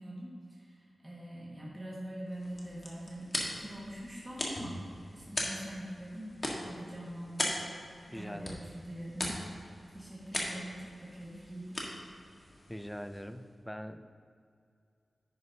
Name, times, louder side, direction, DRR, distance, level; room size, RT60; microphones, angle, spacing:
voice 1, 0.0-11.9, right 1 dB, 10° right, -6 dB, 1.7 m, -44 dB
sound 1, 2.3-13.5, left 1 dB, 35° left, 1.5 m, -40 dB
voice 2, 8.1-8.6 12.7-14.1, equal, 5° left, 9 dB, 0.4 m, -42 dB
10.5 x 9.4 x 2.8 m, 2.3 s
wide cardioid pair, 95°, 0 cm